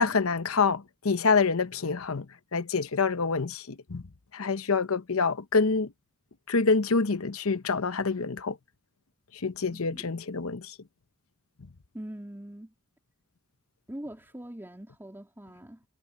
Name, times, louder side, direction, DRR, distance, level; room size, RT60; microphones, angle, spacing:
voice 1, 0.0-2.3 2.5-4.0 4.3-5.9 6.5-8.6 9.3-10.7, left 4 dB, 75° left, 0.9 m, -26 dB
voice 2, 9.7-10.2 11.9-12.7 13.9-15.8, right 1 dB, 10° right, 2.8 m, -43 dB
head